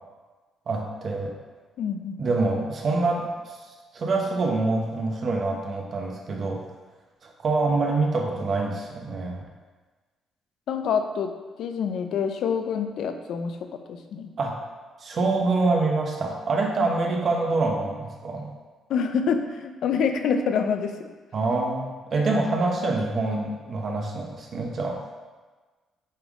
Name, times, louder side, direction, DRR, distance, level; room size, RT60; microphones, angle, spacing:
voice 1, 0.7-1.4 2.2-3.6 3.9-6.6 7.2-9.5 14.4-14.6 15.0-18.5 21.3-25.0, right 3 dB, 40° right, 0 dB, 0.9 m, -26 dB
voice 2, 1.8-2.3 10.7-11.3 11.6-14.3 18.9-20.9, left 6 dB, 65° left, 7 dB, 0.5 m, -26 dB
8.5 x 3.5 x 3.7 m, 1.3 s
cardioid pair, 160°, 0 cm